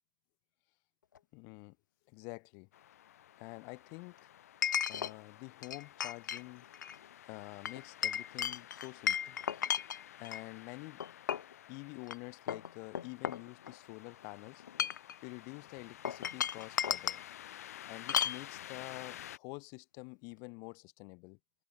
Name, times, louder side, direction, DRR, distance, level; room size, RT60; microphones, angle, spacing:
Chink clink, 1.2-1.3 4.6-5.1 5.6-6.4 6.7-7.0 7.7-10.4 11.0-11.5 12.0-12.2 12.5-13.9 14.6-15.1 16.0-17.2 18.1-18.4, left 8 dB, 60° left, 0.7 m, -34 dB
voice 1, 1.3-1.8 2.1-2.7 3.4-4.3 4.9-6.6 7.3-9.4 10.2-11.0 11.7-14.6 15.2-17.2 17.9-21.4, left 34 dB, 25° left, 1.2 m, -48 dB
sound 1, 2.7-19.4, left 11 dB, 45° left, 1.7 m, -53 dB
open air
hypercardioid pair, 145°, 11 cm